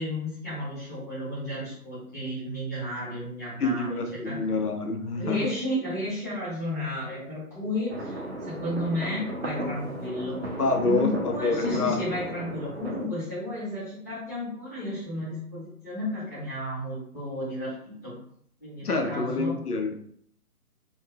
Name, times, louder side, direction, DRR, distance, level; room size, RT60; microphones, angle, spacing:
voice 1, 0.0-4.4 5.2-10.4 10.8-18.1 18.6-19.6, left 1 dB, 10° left, -15 dB, 0.8 m, -33 dB
voice 2, 3.6-5.5 10.6-12.0 18.8-20.0, left 3 dB, 80° left, 5 dB, 0.6 m, -27 dB
sound 1, 7.9-13.1, right 1 dB, 45° right, 0.5 m, -35 dB
2.9 x 2.2 x 2.3 m, 0.64 s
figure-of-eight pair, 145°, 46 cm